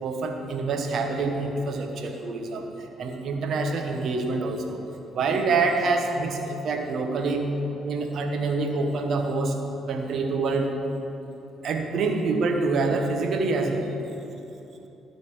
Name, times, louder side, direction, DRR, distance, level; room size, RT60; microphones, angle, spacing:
voice 1, 0.0-2.7 3.0-4.8 5.1-7.5 7.8-9.6 9.9-10.7 11.6-13.9, right 3 dB, 60° right, 4 dB, 1.0 m, -26 dB
12.0 x 4.1 x 6.9 m, 2.9 s
hypercardioid pair, 50°, 0 cm